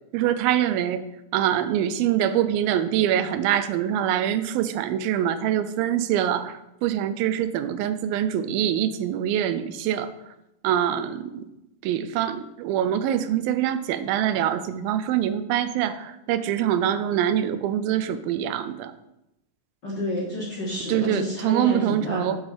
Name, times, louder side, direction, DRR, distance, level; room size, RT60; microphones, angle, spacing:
voice 1, 0.1-1.0 1.3-10.1 10.6-11.5 11.8-18.9 20.9-22.4, right 10 dB, 85° right, 11 dB, 2.4 m, -24 dB
voice 2, 19.8-22.3, left 1 dB, 40° left, -5 dB, 1.6 m, -29 dB
7.2 x 6.4 x 5.1 m, 0.88 s
omnidirectional pair, 4.2 m